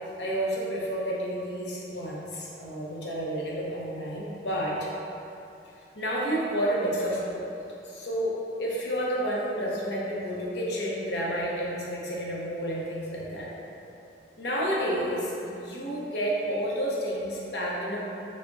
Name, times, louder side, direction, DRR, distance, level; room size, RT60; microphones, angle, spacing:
voice 1, 0.2-4.9 6.0-7.5 7.8-13.5 14.4-18.0, equal, 60° left, -4 dB, 0.6 m, -30 dB
3.4 x 2.1 x 3.8 m, 2.9 s
head